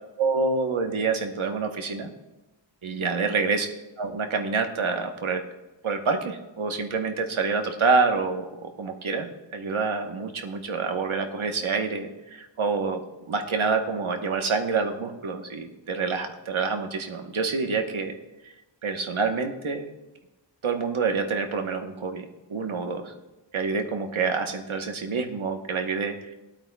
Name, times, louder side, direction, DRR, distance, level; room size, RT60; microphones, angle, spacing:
voice 1, 0.2-2.1 2.8-3.7 4.0-5.4 5.8-9.3 9.5-13.0 13.3-18.2 18.8-19.9 20.6-23.1 23.5-26.3, right 4 dB, 80° right, 5 dB, 1.2 m, -27 dB
19.0 x 8.8 x 2.3 m, 1.1 s
wide cardioid pair, 75°, 48 cm